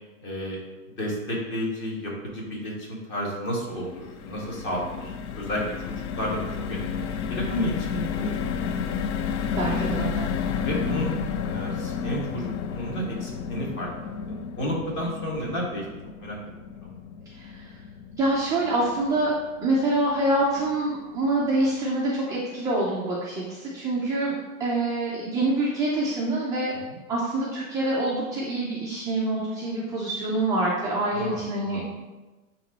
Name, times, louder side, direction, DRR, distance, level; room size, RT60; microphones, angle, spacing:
voice 1, 0.2-0.6 1.0-8.9 9.5-10.0 10.6-11.1 11.4-13.9 14.3-15.8 16.2-16.4 16.8-17.0 26.9-27.0 31.1-31.9, equal, 25° left, -3 dB, 1.9 m, -32 dB
sound 1, 3.7-20.0 20.4-20.5 20.8-21.0, left 6 dB, 55° left, 0.5 m, -32 dB
voice 2, 9.5-10.3 17.3-17.7 18.1-19.3 19.6-26.7 27.1-32.0, right 2 dB, 10° right, -6 dB, 0.4 m, -26 dB
8.9 x 3.0 x 4.0 m, 1.2 s
hypercardioid pair, 135°, 43 cm